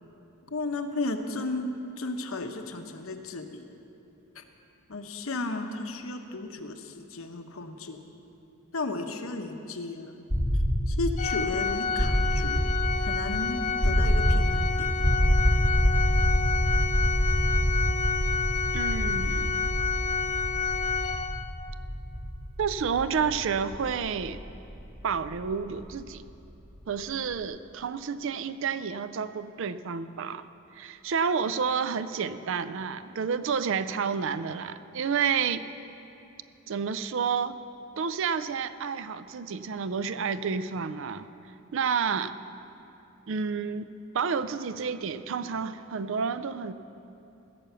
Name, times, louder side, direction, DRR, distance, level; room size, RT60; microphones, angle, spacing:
voice 1, 0.5-1.7 2.0-3.6 4.3-4.4 4.9-8.0 8.7-10.2 10.9-12.7 13.0-14.9, left 2 dB, 75° left, 6 dB, 0.9 m, -34 dB
sound 1, 10.3-26.1, equal, 45° right, 1.5 m, -27 dB
Organ, 11.2-21.8, left 5 dB, 35° left, 0.4 m, -30 dB
voice 2, 18.7-19.6 22.6-24.4 25.0-26.2 26.9-30.5 30.7-35.6 36.7-37.6 38.0-41.3 41.7-42.3 43.3-43.9 44.1-46.7, right 6 dB, 65° right, 13 dB, 0.4 m, -30 dB
16.0 x 6.9 x 6.9 m, 2.9 s
head